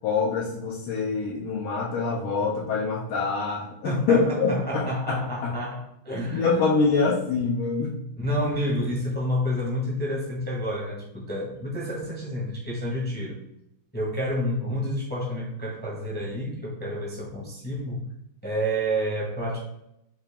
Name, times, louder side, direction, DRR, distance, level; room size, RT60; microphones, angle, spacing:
voice 1, 0.0-5.6 6.1-8.0, left 4 dB, 90° left, -5 dB, 1.6 m, -25 dB
voice 2, 3.8-6.7 8.2-13.4 13.9-18.1 18.4-19.6, equal, 10° left, -5 dB, 0.5 m, -29 dB
5.1 x 2.8 x 3.4 m, 0.81 s
omnidirectional pair, 2.3 m